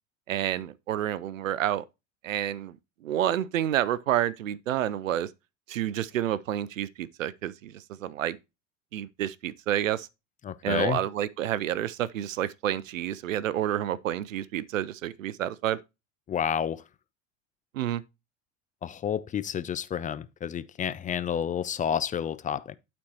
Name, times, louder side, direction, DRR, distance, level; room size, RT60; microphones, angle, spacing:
voice 1, 0.3-1.8 2.2-2.8 3.0-5.3 5.7-8.4 8.9-10.1 10.6-15.8 17.7-18.0, right 11 dB, 85° right, 0.6 m, -29 dB
voice 2, 10.4-11.0 16.3-16.8 18.8-22.8, left 8 dB, 20° left, 0.4 m, -30 dB
11.5 x 4.3 x 3.0 m
hypercardioid pair, 80°, 38 cm